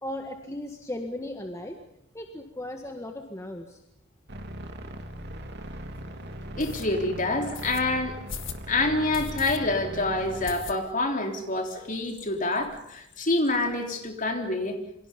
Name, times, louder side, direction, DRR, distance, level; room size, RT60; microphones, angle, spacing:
voice 1, 0.0-1.8 2.1-3.8, left 1 dB, 15° left, 3 dB, 1.8 m, -36 dB
sound 1, 4.3-10.5, equal, 55° right, 2.8 m, -39 dB
sound 2, 5.2-5.3 5.8-5.9 6.6-6.9 7.5-7.8 8.3-8.6 9.1-9.6 9.9-10.0 10.5-11.1 11.5-11.6 11.8-11.9 12.2-12.8, left 5 dB, 65° left, 2.2 m, -39 dB
voice 2, 6.6-8.2 8.7-14.8, left 2 dB, 40° left, 3 dB, 3.8 m, -27 dB
28.0 x 25.0 x 5.4 m, 0.76 s
head